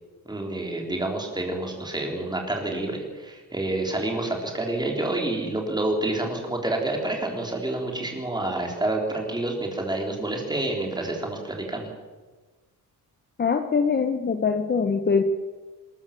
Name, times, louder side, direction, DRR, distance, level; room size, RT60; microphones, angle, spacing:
voice 1, 0.3-11.9, right 2 dB, 10° right, 1 dB, 3.7 m, -28 dB
voice 2, 13.4-15.2, left 5 dB, 25° left, 7 dB, 1.0 m, -23 dB
25.5 x 14.0 x 7.4 m, 1.3 s
wide cardioid pair, 175°, 38 cm